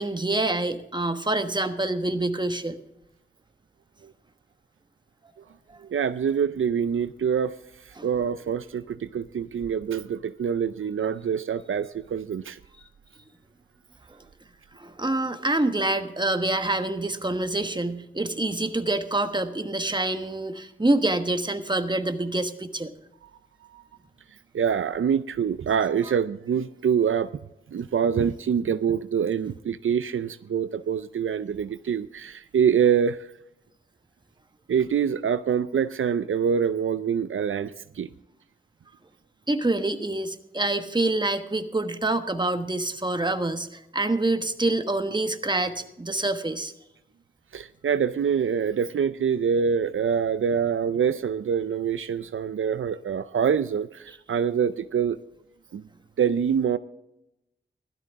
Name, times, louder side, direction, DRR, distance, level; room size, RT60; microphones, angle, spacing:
voice 1, 0.0-2.8 8.0-8.1 14.7-22.9 39.5-46.7, right 2 dB, 20° right, 8 dB, 1.2 m, -26 dB
voice 2, 5.8-12.6 23.7-23.8 24.5-27.3 27.7-33.3 34.7-38.1 47.5-55.2 55.7-55.8 56.2-56.8, right 7 dB, 80° right, 13 dB, 0.5 m, -25 dB
16.0 x 13.0 x 3.6 m, 0.86 s
cardioid pair, 50°, 21 cm